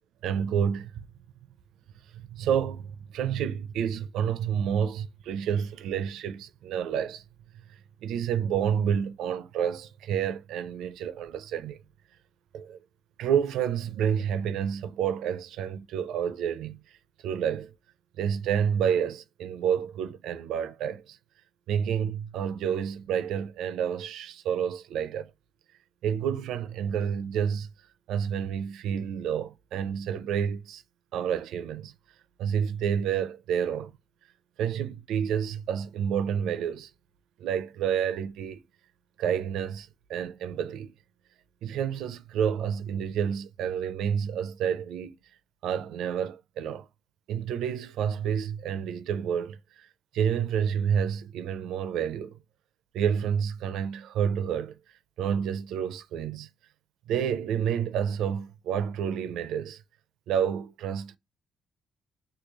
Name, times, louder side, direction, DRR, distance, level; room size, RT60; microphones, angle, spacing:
voice 1, 0.2-1.0 2.1-7.2 8.0-11.8 12.5-12.8 13.2-16.8 17.2-17.7 18.2-21.2 21.7-25.3 26.0-27.7 28.1-30.8 31.1-31.9 32.4-33.9 34.6-36.9 37.4-38.6 39.2-40.9 41.6-45.1 45.6-46.9 47.3-49.9 50.1-52.4 52.9-54.8 55.2-56.5 57.1-59.8 60.3-61.2, right 8 dB, 85° right, 0.4 m, -29 dB
3.0 x 2.3 x 3.6 m
cardioid pair, 90°, 0 cm